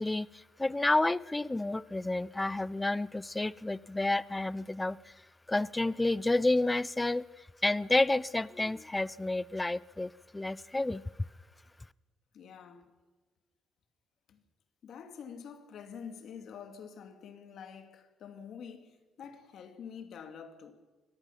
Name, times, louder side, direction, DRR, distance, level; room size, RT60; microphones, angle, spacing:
voice 1, 0.0-5.0 5.5-7.2 7.6-11.0, left 2 dB, 15° left, 0.5 m, -30 dB
voice 2, 12.3-12.9 14.3-14.4 14.8-20.7, left 7 dB, 70° left, 2.3 m, -47 dB
24.5 x 18.0 x 5.8 m
cardioid pair, 90°, 0 cm